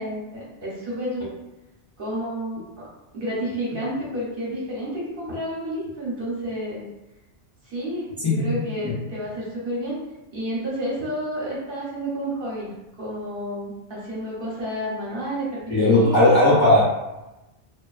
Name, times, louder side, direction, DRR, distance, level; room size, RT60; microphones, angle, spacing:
voice 1, 0.0-1.3 2.0-2.9 3.1-6.8 7.6-10.0 10.3-16.3, equal, 55° right, -6 dB, 0.9 m, -30 dB
voice 2, 15.7-16.8, left 1 dB, 30° left, -9 dB, 0.5 m, -17 dB
2.6 x 2.4 x 2.3 m, 0.99 s
omnidirectional pair, 1.2 m